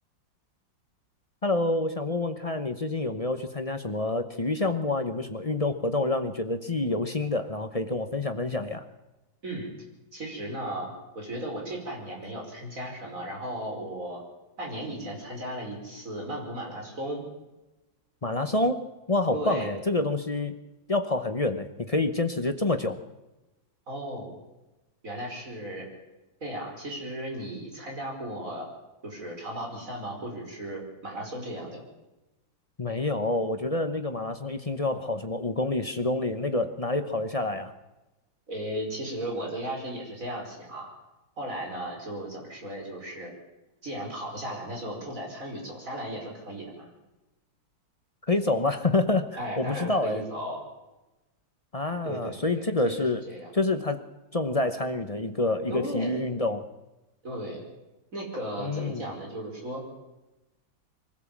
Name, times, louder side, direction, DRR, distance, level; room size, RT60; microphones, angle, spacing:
voice 1, 1.4-8.9 18.2-20.5 20.9-23.0 32.8-37.7 48.3-50.2 51.7-53.2 53.5-54.0 54.3-56.7 58.6-59.1, left 2 dB, 30° left, 8 dB, 0.7 m, -27 dB
voice 2, 10.1-14.2 14.6-17.2 19.3-19.7 23.9-24.4 25.0-25.9 26.4-28.7 29.0-31.8 38.5-40.9 41.4-43.3 43.8-46.9 49.4-50.6 52.0-53.5 55.7-56.2 57.2-57.6 58.1-59.8, right 1 dB, 40° right, 0 dB, 5.7 m, -36 dB
24.0 x 15.5 x 7.4 m, 1.0 s
omnidirectional pair, 2.1 m